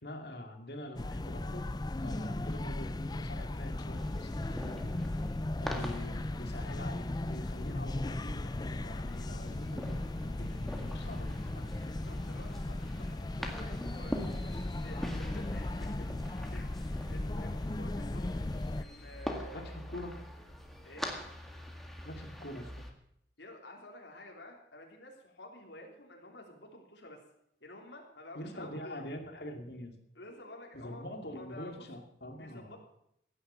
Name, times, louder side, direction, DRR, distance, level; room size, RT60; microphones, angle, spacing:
voice 1, 0.0-1.7 2.0-5.0 5.6-11.7 19.5-20.3 22.1-22.7 28.3-29.9 30.7-32.7, left 1 dB, 60° left, 4 dB, 2.5 m, -44 dB
sound 1, 1.0-18.8, left 1 dB, 25° left, 0.5 m, -37 dB
sound 2, 4.0-22.9, equal, ahead, 1.8 m, -45 dB
voice 2, 11.7-16.1 16.5-16.7 17.1-18.4 18.7-19.8 20.8-21.2 23.4-27.2 27.6-29.1 30.2-31.1 31.3-31.9 32.3-32.8, left 1 dB, 80° left, 0 dB, 3.4 m, -51 dB
16.0 x 10.0 x 6.9 m, 0.74 s
head